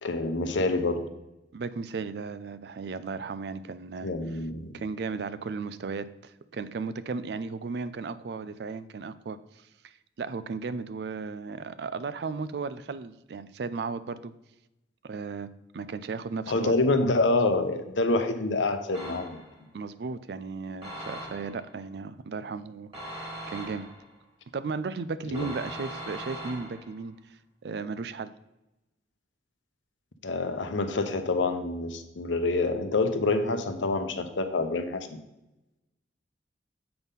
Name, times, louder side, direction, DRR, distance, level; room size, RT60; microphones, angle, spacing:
voice 1, 0.0-1.1 4.0-4.7 16.5-19.4 25.3-25.5 30.2-35.0, left 2 dB, 90° left, 8 dB, 0.8 m, -27 dB
voice 2, 1.5-4.1 4.7-14.3 15.0-15.5 15.7-16.7 19.7-23.9 24.5-28.3, right 4 dB, 60° right, 15 dB, 0.4 m, -35 dB
sound 1, 18.9-19.6 20.8-21.7 22.9-24.1 25.3-27.0, right 1 dB, 25° right, 2.5 m, -40 dB
7.8 x 3.6 x 5.6 m, 0.94 s
head